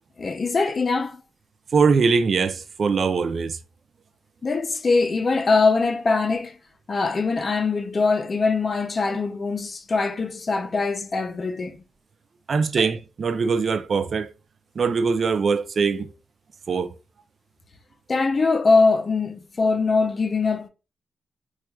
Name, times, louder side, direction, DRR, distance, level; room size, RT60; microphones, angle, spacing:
voice 1, 0.2-1.2 4.4-6.6 6.9-11.8 12.8-12.9 18.1-20.7, left 4 dB, 40° left, 0.5 m, -22 dB
voice 2, 1.7-3.6 12.5-14.3 14.8-16.1 16.7-16.9, right 5 dB, 55° right, 0.4 m, -22 dB
4.2 x 2.4 x 2.2 m
cardioid pair, 100°, 0 cm